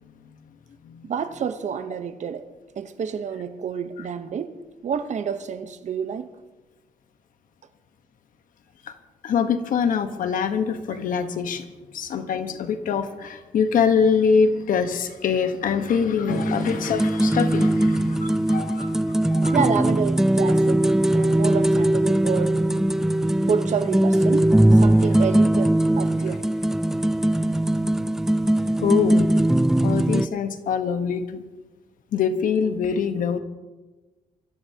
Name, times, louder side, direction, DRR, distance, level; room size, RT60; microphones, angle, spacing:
voice 1, 1.0-2.5 2.8-4.5 4.8-6.3 19.5-20.8 21.1-22.6 23.5-26.5, right 6 dB, 60° right, 0.9 m, -28 dB
voice 2, 9.2-11.6 11.9-19.0 19.3-19.6 28.8-29.3 29.8-31.4 32.1-33.4, left 6 dB, 80° left, 1.2 m, -24 dB
sound 1, 16.3-30.3, right 1 dB, 5° right, 0.4 m, -20 dB
24.5 x 14.5 x 2.9 m
cardioid pair, 110°, 14 cm